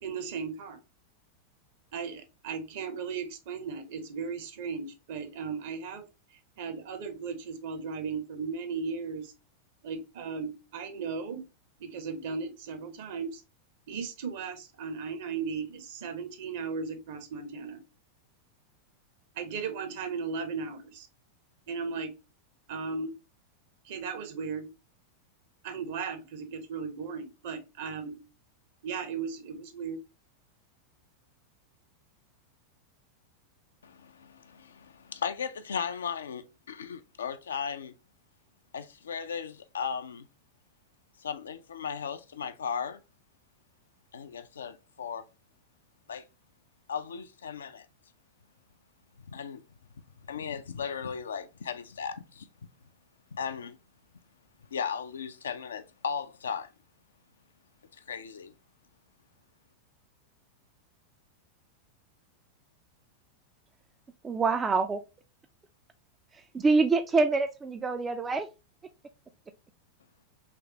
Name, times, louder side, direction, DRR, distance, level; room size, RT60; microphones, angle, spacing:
voice 1, 0.0-0.8 1.9-6.1 6.6-9.3 9.8-11.4 11.8-13.4 13.9-17.8 19.3-21.1 21.7-22.1 22.7-23.1 23.8-24.7 25.6-28.2 28.8-30.0, right 5 dB, 50° right, 0.8 m, -36 dB
voice 2, 33.8-38.0 38.7-40.3 41.2-43.0 44.1-45.3 46.1-46.3 46.9-47.9 49.3-49.6 50.3-52.5 53.3-53.8 54.7-56.7 57.9-58.5, left 7 dB, 70° left, 0.4 m, -36 dB
voice 3, 64.2-65.0 66.5-68.5, right 4 dB, 15° right, 0.3 m, -25 dB
3.4 x 3.1 x 2.8 m
figure-of-eight pair, 90°, 0 cm